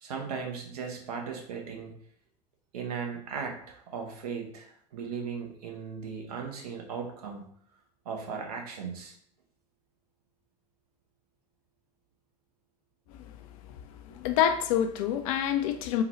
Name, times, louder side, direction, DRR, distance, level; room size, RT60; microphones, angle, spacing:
voice 1, 0.0-1.9 2.7-7.5 8.0-9.1, right 6 dB, 70° right, 0.7 m, -37 dB
voice 2, 14.1-16.0, left 9 dB, 60° left, 0.4 m, -27 dB
3.7 x 2.2 x 2.9 m
figure-of-eight pair, 70°, 21 cm